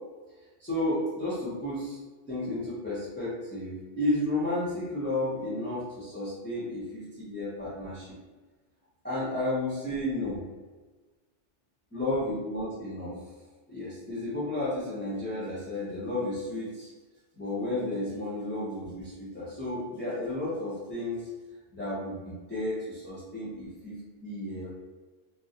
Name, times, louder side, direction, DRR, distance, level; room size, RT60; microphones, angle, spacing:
voice 1, 0.6-2.0 2.3-8.1 9.0-10.4 11.9-13.2 13.7-16.9 17.4-21.3 21.7-24.8, left 1 dB, 15° left, -11 dB, 0.5 m, -32 dB
2.3 x 2.0 x 2.7 m, 1.3 s
omnidirectional pair, 1.2 m